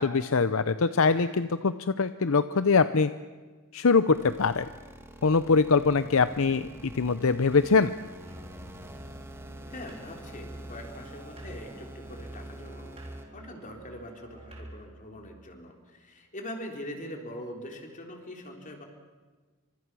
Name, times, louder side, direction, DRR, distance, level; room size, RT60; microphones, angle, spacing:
voice 1, 0.0-3.1 3.7-4.7 5.2-7.9, left 4 dB, 65° left, 12 dB, 0.7 m, -23 dB
sound 1, 4.1-13.2, equal, 10° right, 2.2 m, -47 dB
Musical instrument, 8.2-15.0, right 1 dB, 30° right, 4.3 m, -46 dB
voice 2, 9.7-13.0 13.3-18.9, left 1 dB, 35° left, 3 dB, 3.8 m, -42 dB
28.5 x 25.5 x 6.2 m, 1.4 s
head